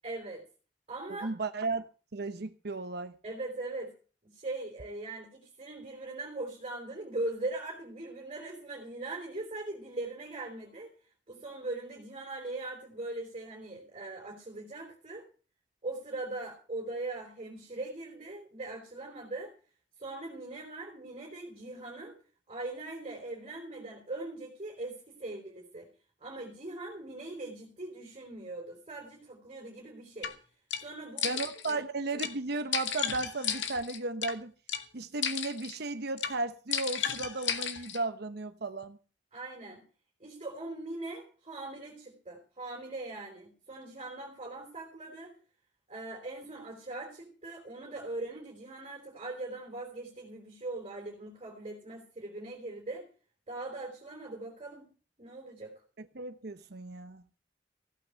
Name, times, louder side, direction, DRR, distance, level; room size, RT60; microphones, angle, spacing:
voice 1, 0.0-0.4 0.9-1.3 3.2-3.9 4.2-10.9 11.3-15.3 15.8-19.5 20.0-22.1 22.5-25.9 26.2-30.3 30.8-31.4 31.7-31.8 39.3-39.8 40.2-45.3 45.9-53.0 53.5-54.9 55.2-55.7, right 2 dB, 35° right, 4.5 m, -40 dB
voice 2, 1.1-3.2 31.2-34.5 34.9-39.0 56.0-57.2, right 3 dB, 60° right, 0.9 m, -35 dB
sound 1, 30.2-30.3 30.7-30.8 31.2-31.7 32.2-32.3 32.7-34.3 34.7-34.8 35.2-35.8 36.2-36.3 36.7-38.0, left 8 dB, 80° left, 1.8 m, -33 dB
16.0 x 9.1 x 6.4 m
head